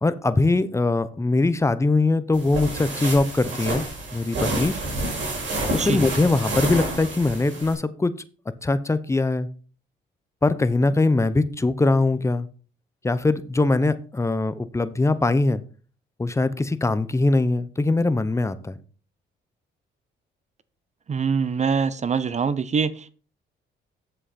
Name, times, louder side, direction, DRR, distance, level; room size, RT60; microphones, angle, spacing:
voice 1, 0.0-3.8 4.1-4.7 5.7-8.1 8.6-9.5 10.4-12.5 13.0-15.6 16.2-18.8, left 2 dB, 15° left, 13 dB, 0.7 m, -22 dB
sound 1, 2.3-7.7, right 2 dB, 70° right, 4.9 m, -29 dB
voice 2, 21.1-23.1, right 5 dB, 35° right, 16 dB, 0.6 m, -24 dB
7.7 x 7.5 x 4.2 m, 0.39 s
cardioid pair, 90°, 20 cm